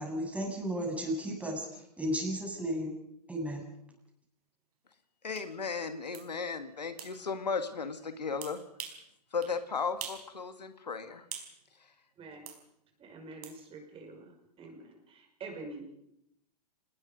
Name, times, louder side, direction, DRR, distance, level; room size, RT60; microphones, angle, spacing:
voice 1, 0.0-3.0 3.3-3.6, equal, 5° right, 1 dB, 7.3 m, -34 dB
voice 2, 5.2-8.6 9.3-11.3, left 5 dB, 90° left, 9 dB, 2.1 m, -35 dB
sound 1, 5.3-5.5 6.1-6.3 7.0-7.1 8.4-9.0 9.4-9.5 10.0-10.3 10.6-11.5 12.5-12.6 13.4-13.6, right 8 dB, 65° right, 4.7 m, -43 dB
voice 3, 12.2-12.5 13.0-15.9, right 3 dB, 25° right, 4 dB, 6.0 m, -46 dB
28.0 x 20.0 x 5.3 m, 0.78 s
hypercardioid pair, 105°, 21 cm